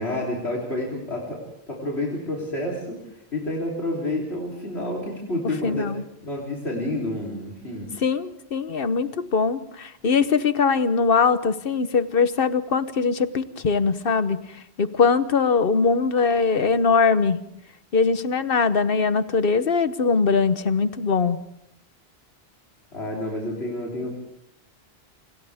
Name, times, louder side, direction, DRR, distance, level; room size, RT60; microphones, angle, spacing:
voice 1, 0.0-1.4 1.7-3.0 3.3-5.9 6.2-7.9 22.9-24.2, left 1 dB, 80° left, -1 dB, 3.9 m, -29 dB
voice 2, 5.6-6.0 8.0-17.4 17.9-21.4, left 5 dB, 60° left, 12 dB, 1.2 m, -21 dB
29.5 x 26.0 x 3.6 m, 0.77 s
omnidirectional pair, 1.1 m